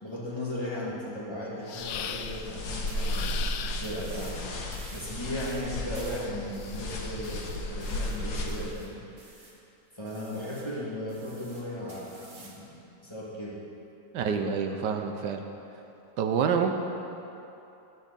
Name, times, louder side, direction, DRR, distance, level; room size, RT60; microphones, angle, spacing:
voice 1, 0.0-4.4 4.9-9.4 9.9-13.6, left 1 dB, 15° left, -7 dB, 2.0 m, -37 dB
sound 1, 1.7-2.5 2.9-4.2 5.9-7.8, left 8 dB, 90° left, 0.6 m, -40 dB
sound 2, 1.8-8.8, left 1 dB, 70° left, 1.6 m, -34 dB
sound 3, 2.9-3.4 3.8-4.4 4.7-9.6 10.1-10.7 11.1-12.6, right 2 dB, 55° right, 1.8 m, -51 dB
voice 2, 14.1-15.4 16.2-16.7, right 6 dB, 85° right, 5 dB, 1.3 m, -27 dB
12.5 x 9.0 x 4.1 m, 2.9 s
omnidirectional pair, 1.8 m